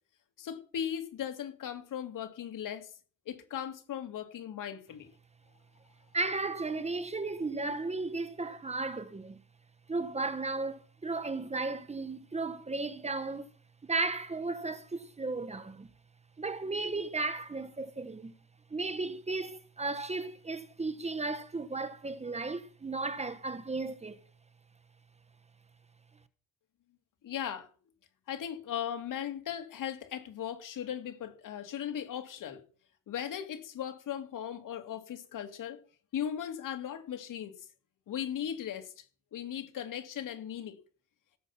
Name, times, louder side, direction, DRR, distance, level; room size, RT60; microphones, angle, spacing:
voice 1, 0.4-2.9 3.3-5.1 27.2-27.7 28.3-32.6 33.1-35.8 36.1-37.5 38.1-39.0 39.3-40.8, left 9 dB, 70° left, 2.5 m, -38 dB
voice 2, 6.1-9.4 9.9-13.5 13.8-15.9 16.4-18.3 18.7-24.2, right 3 dB, 20° right, 1.1 m, -35 dB
17.0 x 7.6 x 5.8 m
cardioid pair, 120°, 32 cm